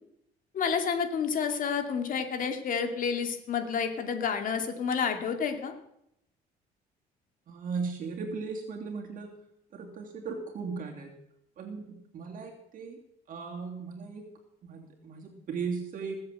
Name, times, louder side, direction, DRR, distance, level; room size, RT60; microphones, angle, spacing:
voice 1, 0.5-5.7, left 6 dB, 55° left, 5 dB, 2.6 m, -30 dB
voice 2, 7.5-9.3 9.7-11.1 11.6-13.0 13.3-14.3 14.6-16.2, right 5 dB, 55° right, 1 dB, 2.8 m, -37 dB
19.5 x 7.9 x 7.9 m, 0.77 s
cardioid pair, 110°, 17 cm